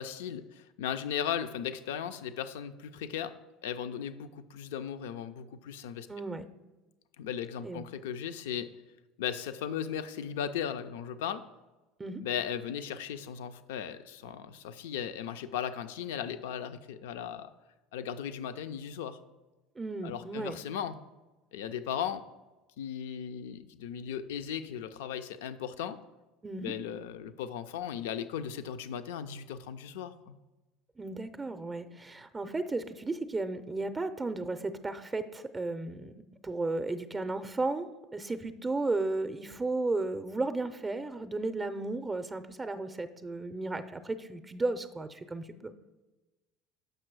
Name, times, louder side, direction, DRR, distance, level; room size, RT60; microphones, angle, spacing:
voice 1, 0.0-3.3 3.6-6.1 7.2-8.7 9.2-11.5 12.2-17.5 17.9-19.2 20.0-21.0 21.5-22.2 22.8-26.0 26.6-30.4, left 9 dB, 70° left, 11 dB, 0.4 m, -37 dB
voice 2, 6.1-6.4 7.6-7.9 12.0-12.2 19.8-20.6 26.4-26.7 31.0-36.1 36.4-45.7, right 2 dB, 20° right, 10 dB, 0.5 m, -34 dB
6.7 x 5.9 x 4.6 m, 1.1 s
hypercardioid pair, 70°, 0 cm